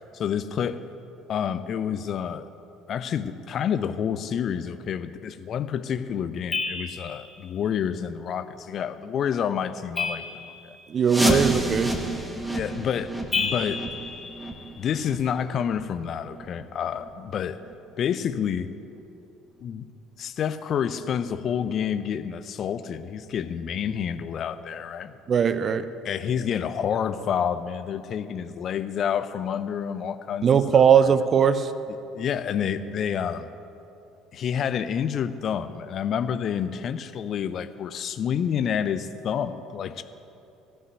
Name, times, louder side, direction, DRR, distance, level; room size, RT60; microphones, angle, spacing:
voice 1, 0.1-0.8 1.3-2.5 2.9-10.4 11.2-11.5 12.5-13.8 14.8-17.6 18.0-18.7 19.6-19.9 20.2-25.1 26.0-30.8 32.1-33.5 34.3-40.0, left 8 dB, 45° left, 12 dB, 0.6 m, -28 dB
sound 1, 6.5-7.3 10.0-11.0 13.3-15.0, left 4 dB, 25° left, 2.5 m, -31 dB
voice 2, 10.9-11.9 25.3-25.9 30.4-31.7, right 7 dB, 40° right, 13 dB, 0.6 m, -19 dB
sound 2, 11.1-16.6 17.0-17.1 17.6-17.7 18.4-18.5 19.0-19.1, right 1 dB, 10° right, 1.4 m, -29 dB
15.0 x 5.6 x 9.5 m, 2.8 s
figure-of-eight pair, 55°, 0 cm